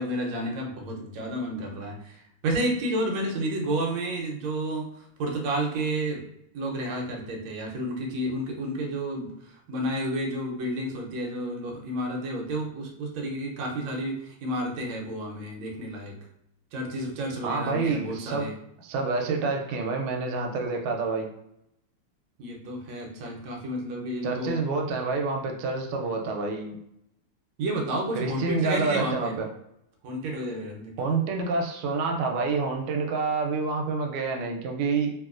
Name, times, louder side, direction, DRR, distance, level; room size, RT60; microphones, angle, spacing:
voice 1, 0.0-6.2 6.5-9.3 9.7-16.1 16.7-18.5 22.4-24.6 27.6-29.3 30.0-31.0, right 1 dB, 70° right, 0 dB, 1.3 m, -31 dB
voice 2, 17.4-18.5 18.8-21.3 24.2-26.8 28.1-29.5 31.0-35.1, right 4 dB, 90° right, 2 dB, 1.5 m, -28 dB
3.0 x 2.9 x 2.4 m, 0.78 s
omnidirectional pair, 2.4 m